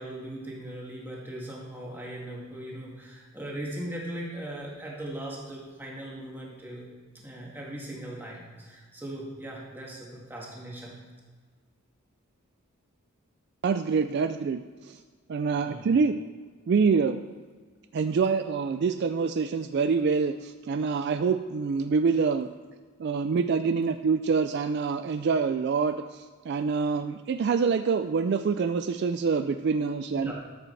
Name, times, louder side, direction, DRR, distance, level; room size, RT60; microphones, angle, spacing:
voice 1, 0.0-6.8 7.1-11.0 15.6-15.9 30.1-30.3, right 1 dB, 10° right, -4 dB, 1.9 m, -39 dB
voice 2, 13.6-15.0 15.3-16.2 16.7-17.2 17.9-22.5 23.0-30.3, right 5 dB, 50° right, 9 dB, 0.3 m, -26 dB
13.0 x 7.6 x 3.3 m, 1.5 s
head